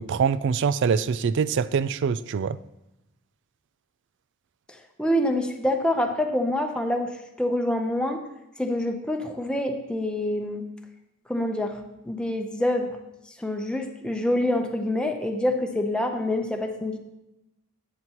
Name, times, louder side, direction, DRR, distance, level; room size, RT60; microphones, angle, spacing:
voice 1, 0.0-2.6, right 6 dB, 55° right, 17 dB, 0.3 m, -24 dB
voice 2, 5.0-8.2 8.6-10.6 11.3-11.8 12.0-13.0 13.4-17.0, left 1 dB, 5° left, 3 dB, 0.8 m, -26 dB
13.5 x 7.8 x 3.0 m, 0.93 s
head